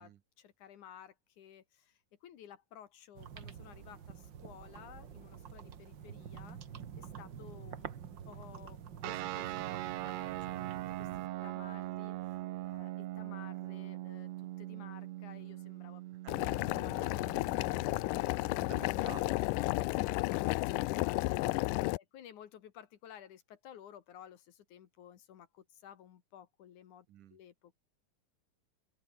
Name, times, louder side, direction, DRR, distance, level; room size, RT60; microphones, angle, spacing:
voice 1, 0.0-6.6 7.0-7.9 8.3-16.0 16.6-18.6 19.6-21.7 21.9-27.8, left 10 dB, 65° left, 2.8 m, -55 dB
sound 1, 3.1-11.3, right 8 dB, 50° right, 1.5 m, -48 dB
sound 2, 9.0-19.9, right 16 dB, 90° right, 1.5 m, -42 dB
Boiling, 16.3-22.0, left 22 dB, 80° left, 1.9 m, -32 dB
voice 2, 18.7-19.3 21.5-22.0 27.1-27.4, right 11 dB, 70° right, 2.7 m, -51 dB
open air
omnidirectional pair, 4.0 m